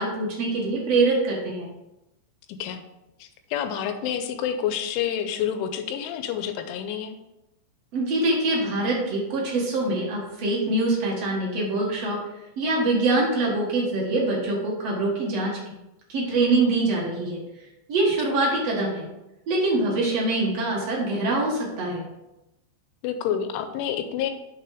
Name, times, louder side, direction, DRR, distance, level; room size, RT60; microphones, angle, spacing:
voice 1, 0.0-1.7 7.9-12.2 12.6-15.6 16.1-17.4 17.9-19.1 19.5-22.1, right 2 dB, 70° right, -3 dB, 1.5 m, -24 dB
voice 2, 3.2-7.2 23.0-24.3, left 9 dB, 85° left, 7 dB, 3.1 m, -28 dB
6.9 x 5.9 x 4.9 m, 0.94 s
omnidirectional pair, 5.6 m